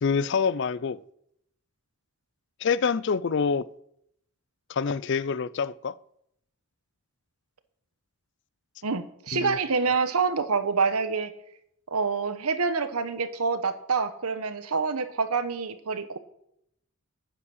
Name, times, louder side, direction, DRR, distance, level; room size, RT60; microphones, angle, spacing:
voice 1, 0.0-1.0 2.6-3.7 4.7-6.0 9.3-9.6, left 5 dB, 50° left, 0.4 m, -26 dB
voice 2, 8.8-11.3 11.9-16.2, right 4 dB, 85° right, 1.0 m, -27 dB
9.7 x 8.6 x 6.4 m
head